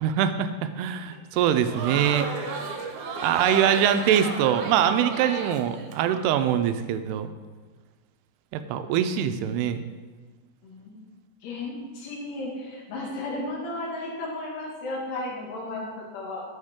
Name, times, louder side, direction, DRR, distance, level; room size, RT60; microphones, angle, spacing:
voice 1, 0.0-2.3 3.2-7.3 8.5-9.8, right 9 dB, 90° right, 10 dB, 2.6 m, -23 dB
Crowd, 1.4-6.2, right 4 dB, 75° right, 2.6 m, -33 dB
voice 2, 10.6-11.0 11.4-16.4, left 2 dB, 80° left, -3 dB, 4.0 m, -34 dB
12.0 x 7.9 x 3.6 m, 1.4 s
omnidirectional pair, 4.7 m